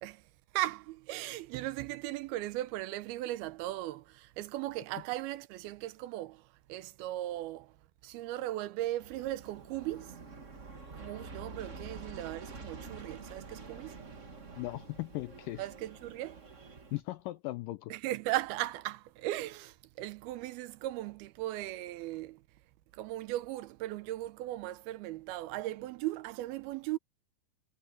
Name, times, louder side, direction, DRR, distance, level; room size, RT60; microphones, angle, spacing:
voice 1, 0.0-7.8 8.0-10.2 10.9-14.0 15.6-16.5 17.9-22.4 22.9-27.0, right 15 dB, 80° right, 2.6 m, -37 dB
Aircraft, 9.0-17.0, right 4 dB, 60° right, 0.7 m, -48 dB
voice 2, 14.6-15.6 16.9-17.9, left 18 dB, 80° left, 2.0 m, -38 dB
omnidirectional pair, 4.5 m